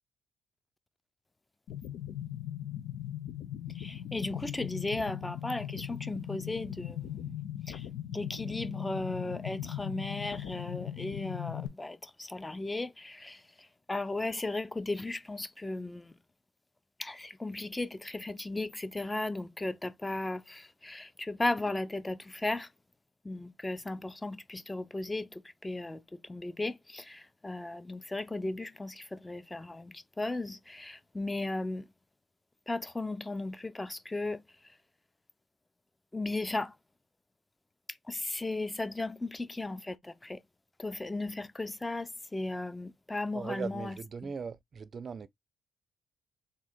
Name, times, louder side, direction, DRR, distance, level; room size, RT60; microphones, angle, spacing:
sound 1, 1.7-11.7, left 11 dB, 90° left, 0.6 m, -39 dB
voice 1, 3.7-7.4 7.7-7.9 8.1-16.2 17.0-22.7 23.2-31.9 32.7-34.7 36.1-36.8 37.9-40.4 40.8-44.3, left 2 dB, 15° left, 0.5 m, -36 dB
voice 2, 43.3-45.3, right 5 dB, 45° right, 0.4 m, -39 dB
3.7 x 2.6 x 4.3 m
cardioid pair, 90°, 0 cm